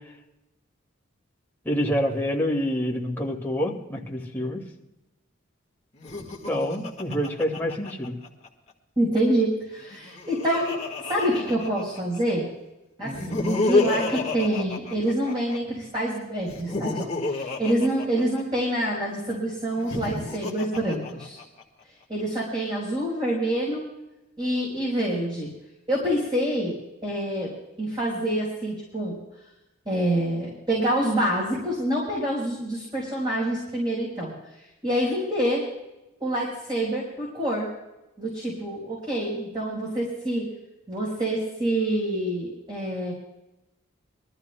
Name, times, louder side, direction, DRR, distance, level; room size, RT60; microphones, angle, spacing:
voice 1, 1.7-4.6 6.5-8.1 13.0-13.3, equal, 10° left, -1 dB, 2.1 m, -27 dB
Laughter, 5.9-8.5 9.8-12.2 13.0-15.6 16.4-18.8 19.7-21.6, left 3 dB, 30° left, 1.8 m, -29 dB
voice 2, 9.0-10.8 11.1-12.5 13.0-21.4 22.1-23.8 24.4-25.5 25.9-27.5 27.8-29.2 29.9-34.3 34.8-35.6 36.2-37.7 38.2-40.5 40.9-43.1, right 1 dB, 25° right, -5 dB, 4.2 m, -26 dB
23.0 x 14.0 x 2.3 m, 0.95 s
head